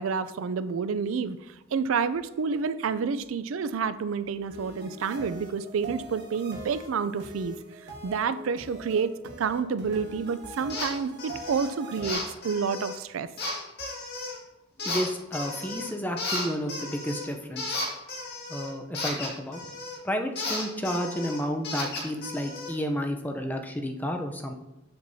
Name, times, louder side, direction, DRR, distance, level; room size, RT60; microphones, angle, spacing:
voice 1, 0.0-1.4 1.7-7.6 8.0-9.1 9.4-13.3, right 5 dB, 75° right, 13 dB, 0.4 m, -29 dB
sound 1, 4.5-12.1, right 1 dB, 55° right, 1.4 m, -43 dB
sound 2, 10.7-10.9 11.2-11.7 12.0-13.0 13.4-14.4 14.8-15.9 16.2-20.0 20.4-22.7, left 2 dB, 50° left, 2.0 m, -34 dB
voice 2, 14.8-17.7 18.5-19.6 20.0-24.5, equal, 10° left, 4 dB, 0.6 m, -31 dB
7.8 x 7.0 x 2.7 m, 1.0 s
head